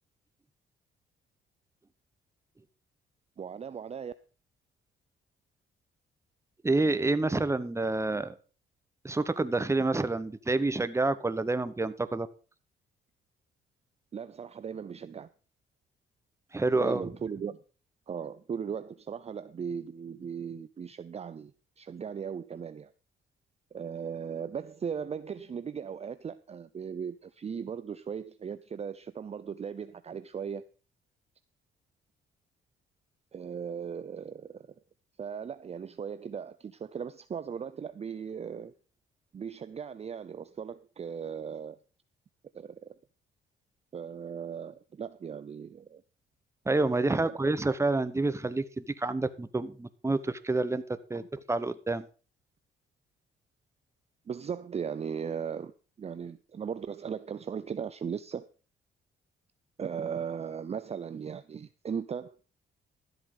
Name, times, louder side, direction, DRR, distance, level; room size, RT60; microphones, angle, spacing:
voice 1, 3.4-4.1 14.1-15.3 16.8-17.6 18.1-21.5 21.8-22.9 23.7-30.7 33.3-34.7 35.2-38.7 39.3-41.8 42.5-42.9 43.9-46.0 51.1-51.2 54.3-58.5 59.8-62.4, right 7 dB, 30° right, 0.5 m, -37 dB
voice 2, 6.6-8.4 9.0-12.3 16.5-17.0 46.6-52.1, right 2 dB, 15° right, 1.0 m, -28 dB
13.0 x 8.1 x 5.4 m
cardioid pair, 90°, 20 cm